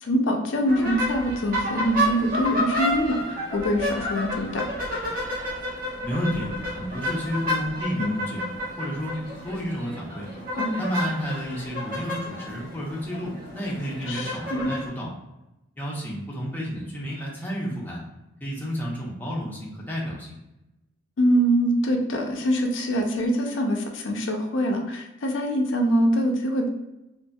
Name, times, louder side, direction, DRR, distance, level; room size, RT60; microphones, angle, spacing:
voice 1, 0.0-4.7 8.0-8.1 10.6-10.8 14.1-14.7 21.2-26.7, equal, 65° left, 3 dB, 0.5 m, -24 dB
sound 1, 0.7-14.9, equal, 45° right, 0.9 m, -30 dB
voice 2, 6.0-8.4 8.8-10.3 10.8-15.1 15.8-18.0 18.4-20.4, equal, 10° left, -5 dB, 0.6 m, -31 dB
2.6 x 2.5 x 2.2 m, 0.94 s
head